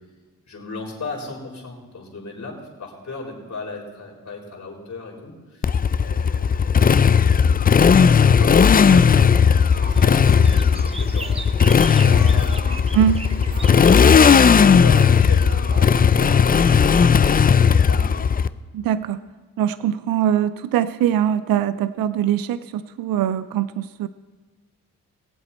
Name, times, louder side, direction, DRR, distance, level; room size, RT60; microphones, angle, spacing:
voice 1, 0.4-13.0 13.7-17.5 17.9-18.2, left 3 dB, 55° left, -1 dB, 4.1 m, -37 dB
Motorcycle, 5.6-18.5, left 6 dB, 25° left, 0.4 m, -15 dB
sound 1, 8.6-17.0, right 6 dB, 40° right, 0.8 m, -38 dB
sound 2, 9.9-14.6, right 3 dB, 15° right, 1.0 m, -38 dB
voice 2, 12.9-13.3 18.7-19.2 19.6-24.1, right 10 dB, 75° right, 14 dB, 0.5 m, -22 dB
21.5 x 7.8 x 4.3 m, 1.4 s
cardioid pair, 65°, 35 cm